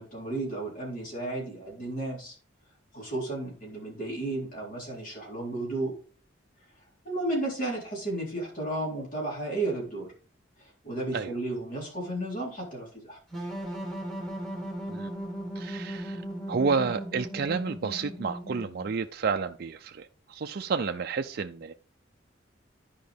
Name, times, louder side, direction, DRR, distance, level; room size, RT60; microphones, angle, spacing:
voice 1, 0.0-2.4 2.9-5.9 7.0-10.1 10.6-13.2, right 2 dB, 45° left, 3.7 m, -33 dB
sound 1, 13.3-19.0, right 1 dB, ahead, 2.5 m, -37 dB
voice 2, 15.6-16.2 16.5-21.7, right 5 dB, 55° right, 0.4 m, -30 dB
11.5 x 5.1 x 3.4 m
head